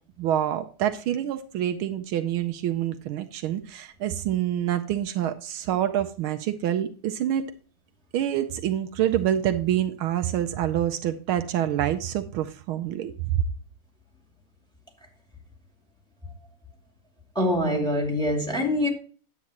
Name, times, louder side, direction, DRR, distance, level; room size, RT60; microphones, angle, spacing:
voice 1, 0.2-7.4 8.1-13.4, right 11 dB, 80° right, 1.5 m, -26 dB
voice 2, 17.3-18.9, left 1 dB, ahead, 2.3 m, -24 dB
9.7 x 8.3 x 2.9 m
omnidirectional pair, 2.3 m